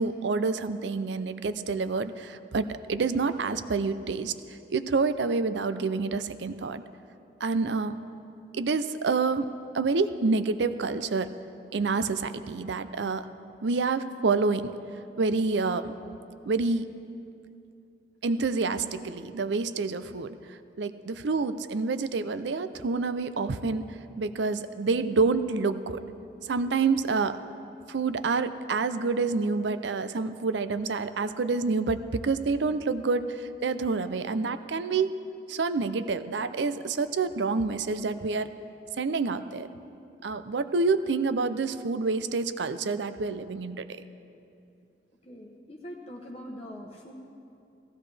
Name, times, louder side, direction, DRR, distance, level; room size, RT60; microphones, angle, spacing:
voice 1, 0.0-4.3 4.7-6.8 7.4-8.0 8.5-9.5 9.7-11.3 11.7-13.3 13.6-14.7 15.2-15.9 16.4-16.9 18.2-20.4 20.8-23.9 24.2-26.0 26.5-27.4 27.9-35.1 35.5-38.5 39.0-39.7 40.2-44.0, right 4 dB, 75° right, 12 dB, 0.5 m, -28 dB
voice 2, 45.3-47.1, equal, 35° left, -1 dB, 0.9 m, -43 dB
16.0 x 15.5 x 3.3 m, 2.6 s
head